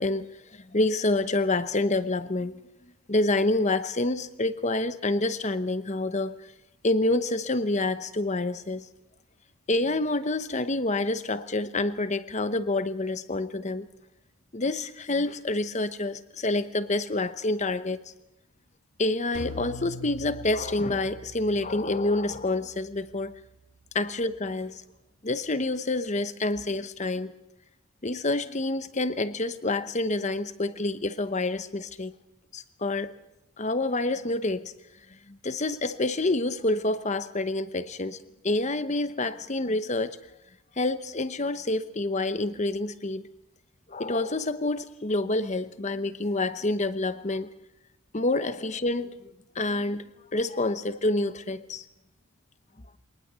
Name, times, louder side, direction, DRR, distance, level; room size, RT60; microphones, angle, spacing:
voice 1, 0.0-2.6 3.1-6.4 6.8-8.9 9.7-13.9 14.5-18.0 19.0-23.3 23.9-24.8 25.2-27.3 28.0-32.1 32.5-33.1 33.6-34.7 35.3-38.2 38.4-40.2 40.8-43.2 43.9-47.5 48.1-49.1 49.5-50.0 50.3-51.8, left 2 dB, 35° left, 0.9 m, -27 dB
sound 1, 19.3-24.8, left 1 dB, 65° left, 3.7 m, -44 dB
23.5 x 19.0 x 6.9 m
head